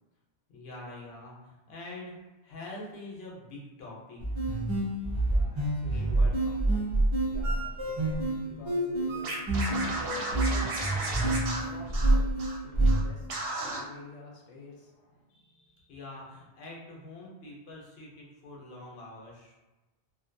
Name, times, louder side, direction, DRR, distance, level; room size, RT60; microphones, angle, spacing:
voice 1, 0.5-4.4 5.9-6.9 15.3-19.5, left 2 dB, 65° left, -3 dB, 0.9 m, -45 dB
sound 1, 4.2-13.0, right 1 dB, 45° right, 0.3 m, -27 dB
voice 2, 5.1-15.2, left 3 dB, 90° left, -2 dB, 0.9 m, -49 dB
Scratching (performance technique), 9.2-12.6 12.8-13.0 13.3-13.8, right 2 dB, 65° right, 0.7 m, -34 dB
2.5 x 2.1 x 2.5 m, 1.1 s
omnidirectional pair, 1.2 m